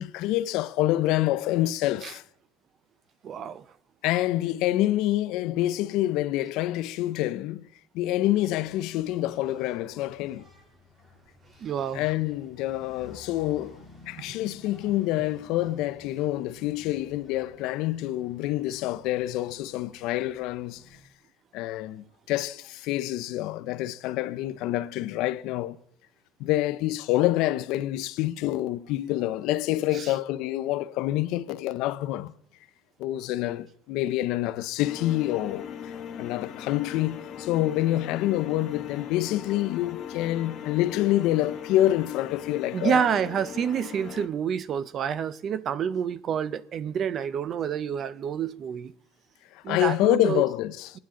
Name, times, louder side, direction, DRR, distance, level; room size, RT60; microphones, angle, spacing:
voice 1, 0.0-2.2 4.0-7.6 7.9-10.5 11.9-20.8 21.5-25.8 26.4-32.3 33.0-43.1 49.5-51.0, left 15 dB, 60° left, 0.5 m, -27 dB
voice 2, 3.2-3.6 11.6-12.0 29.9-30.1 42.7-48.9 49.6-50.4, right 8 dB, 30° right, 0.4 m, -28 dB
Engine, 8.1-21.1, left 2 dB, 15° right, 2.0 m, -53 dB
sound 1, 34.8-44.3, left 9 dB, 35° left, 0.9 m, -39 dB
26.5 x 9.6 x 3.7 m
cardioid pair, 170°, 0 cm